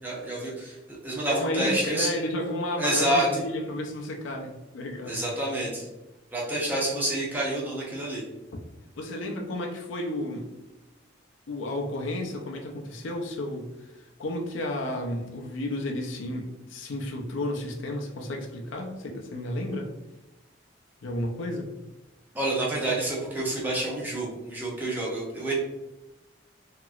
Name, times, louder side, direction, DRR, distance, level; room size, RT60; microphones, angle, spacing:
voice 1, 0.0-2.1 2.8-3.4 5.0-5.9 6.3-8.2 22.3-25.5, right 1 dB, 10° right, -5 dB, 0.7 m, -28 dB
voice 2, 1.3-5.2 9.0-10.5 11.5-19.9 21.0-21.7, left 1 dB, 75° left, 2 dB, 0.5 m, -32 dB
2.9 x 2.9 x 2.3 m, 1.0 s
head